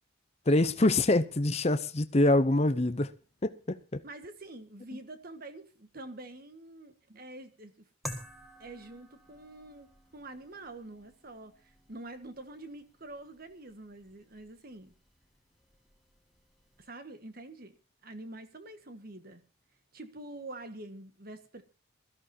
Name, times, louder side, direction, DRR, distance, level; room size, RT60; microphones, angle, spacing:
voice 1, 0.5-3.1 3.4-4.0, left 2 dB, 30° left, 0.7 m, -25 dB
voice 2, 4.0-7.7 8.6-11.5 11.9-14.9 16.8-17.8 18.0-19.4 19.9-21.6, right 2 dB, 45° right, 1.5 m, -46 dB
sound 1, 8.0-16.9, left 1 dB, ahead, 1.8 m, -50 dB
22.0 x 13.5 x 2.8 m
head